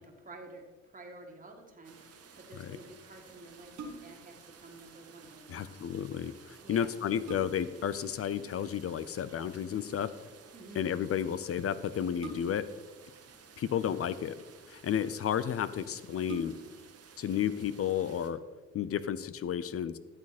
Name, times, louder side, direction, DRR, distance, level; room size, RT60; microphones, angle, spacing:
voice 1, 0.0-5.8 6.6-6.9 10.5-10.9, right 2 dB, 25° right, 1 dB, 1.9 m, -51 dB
sound 1, 1.8-18.3, right 6 dB, 55° right, 1.3 m, -56 dB
sound 2, 3.7-4.3 6.3-6.4 6.9-7.8 9.4-9.7 12.2-12.8 13.8-14.5 15.2-15.3 15.6-15.7 16.2-16.9 17.4-17.5, right 3 dB, 75° right, 1.6 m, -45 dB
voice 2, 5.5-10.1 10.8-12.7 13.6-14.4 14.7-16.5 17.2-18.4 18.7-20.0, left 9 dB, 50° left, 15 dB, 0.6 m, -32 dB
12.5 x 7.5 x 4.2 m, 1.4 s
cardioid pair, 90°, 30 cm